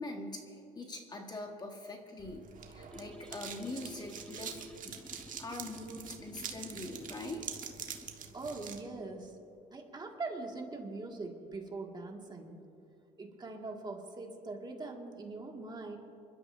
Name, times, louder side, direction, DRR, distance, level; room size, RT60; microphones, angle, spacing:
voice 1, 0.0-5.0 5.4-7.5, left 2 dB, 25° left, 2 dB, 1.4 m, -43 dB
sound 1, 2.2-8.8, right 7 dB, 50° right, 1.5 m, -45 dB
sound 2, 2.9-8.1, left 1 dB, 5° left, 0.4 m, -53 dB
voice 2, 8.3-9.3 9.7-12.6 13.2-16.0, right 3 dB, 25° right, 1 dB, 1.9 m, -42 dB
28.5 x 12.5 x 2.6 m, 2.8 s
cardioid pair, 110°, 17 cm